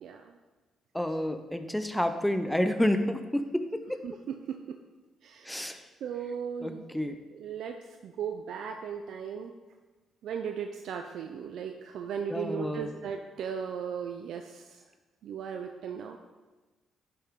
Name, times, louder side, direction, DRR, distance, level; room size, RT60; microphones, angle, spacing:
voice 1, 0.0-0.3 4.0-4.6 5.2-5.6 6.0-6.9 7.3-9.5 10.2-14.8 15.2-16.2, right 7 dB, 75° right, 5 dB, 0.5 m, -37 dB
voice 2, 0.9-4.0 5.5-5.8 6.6-7.2 12.3-12.9, left 1 dB, 5° left, 8 dB, 0.7 m, -29 dB
10.5 x 6.9 x 3.7 m, 1.2 s
cardioid pair, 90°, 0 cm